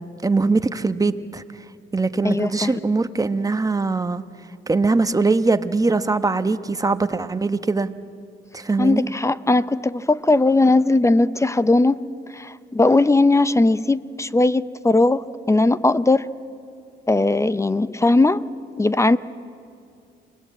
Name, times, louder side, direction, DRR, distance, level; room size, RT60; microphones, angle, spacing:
voice 1, 0.2-1.4 1.9-4.2 4.7-7.9 8.5-9.1, right 3 dB, 15° right, 11 dB, 1.0 m, -21 dB
voice 2, 2.2-2.8 8.8-12.0 12.3-16.3 17.1-18.4 18.8-19.2, left 2 dB, 15° left, 16 dB, 0.6 m, -18 dB
28.5 x 20.5 x 8.4 m, 2.4 s
cardioid pair, 90°, 20 cm